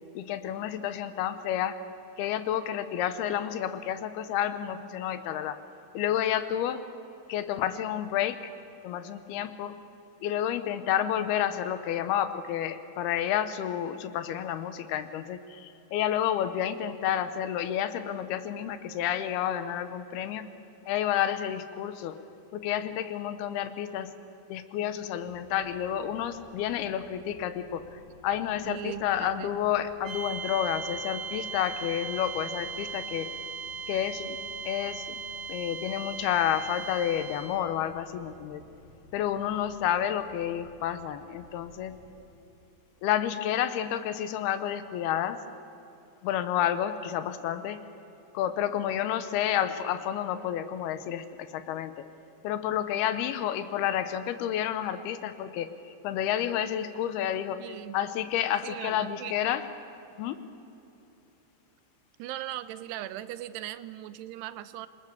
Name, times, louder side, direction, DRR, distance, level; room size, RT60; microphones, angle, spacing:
voice 1, 0.1-1.8 2.2-5.6 5.9-6.8 7.3-8.5 8.8-9.8 10.2-20.5 20.9-22.2 22.5-24.1 24.5-33.3 33.9-34.4 34.7-35.2 35.5-38.6 39.1-42.0 43.0-45.4 46.2-47.8 48.3-52.1 52.4-59.7 60.2-60.4, left 10 dB, 75° left, 11 dB, 2.7 m, -30 dB
sound 1, 25.2-42.2, left 2 dB, 55° left, 5.1 m, -56 dB
voice 2, 28.7-29.5 57.6-58.0 58.6-59.3 62.2-64.9, right 13 dB, 85° right, 14 dB, 2.8 m, -39 dB
sound 2, 30.0-37.8, right 5 dB, 60° right, 2.4 m, -38 dB
26.5 x 21.0 x 7.0 m, 2.9 s
omnidirectional pair, 4.7 m